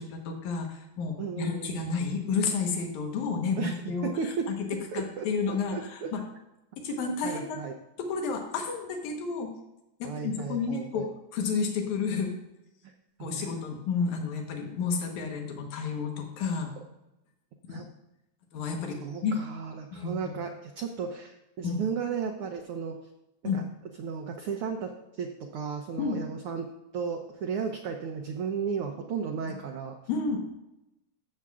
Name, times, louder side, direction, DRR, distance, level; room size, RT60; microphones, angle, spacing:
voice 1, 0.0-4.1 4.5-4.6 4.9-6.2 6.8-7.6 8.1-9.5 10.0-12.3 13.2-16.7 17.7-17.8 18.5-19.3 19.9-20.3 21.6-21.8 23.4-23.6 26.0-26.2 30.1-30.4, left 5 dB, 85° left, 2 dB, 2.6 m, -31 dB
voice 2, 1.2-1.9 3.6-3.8 4.0-4.5 4.9-6.1 6.9-7.8 10.0-11.1 13.2-13.5 17.7-17.8 19.0-23.0 23.5-23.6 24.0-30.0, right 6 dB, 80° right, 4 dB, 1.2 m, -34 dB
14.5 x 7.5 x 2.4 m, 0.93 s
omnidirectional pair, 3.3 m